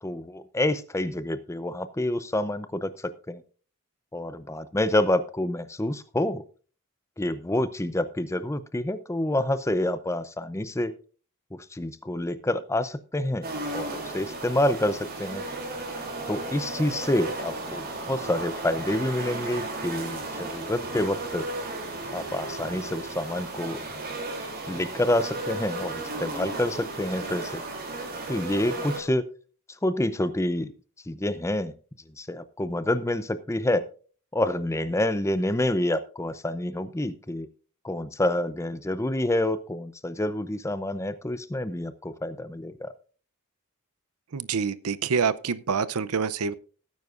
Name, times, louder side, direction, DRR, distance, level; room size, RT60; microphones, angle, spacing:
voice 1, 0.0-3.4 4.1-6.4 7.2-10.9 11.5-13.5 13.7-15.4 16.3-21.5 22.1-23.8 24.7-27.6 28.3-29.3 29.8-30.7 31.1-31.7 32.2-33.8 34.3-37.5 37.8-42.9, left 1 dB, 15° left, 0.6 m, -28 dB
sound 1, 13.4-29.0, right 2 dB, 45° right, 3.0 m, -34 dB
voice 2, 44.3-46.5, right 5 dB, 80° right, 0.6 m, -26 dB
17.5 x 9.4 x 2.5 m
head